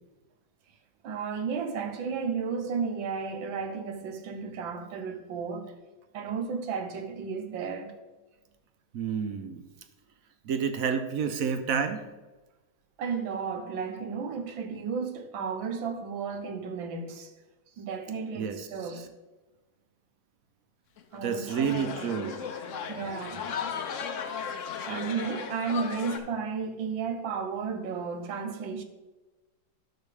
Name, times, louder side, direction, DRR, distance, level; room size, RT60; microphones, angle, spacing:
voice 1, 1.0-5.8 6.1-7.9 13.0-17.3 17.8-19.1 21.1-22.4 22.9-23.5 24.8-28.8, right 5 dB, 90° right, 1.7 m, -33 dB
voice 2, 8.9-9.7 10.5-12.1 18.3-19.0 21.2-22.4, right 6 dB, 65° right, 0.9 m, -30 dB
sound 1, 21.0-26.2, left 6 dB, 60° left, 0.8 m, -36 dB
10.5 x 6.9 x 3.4 m
omnidirectional pair, 2.0 m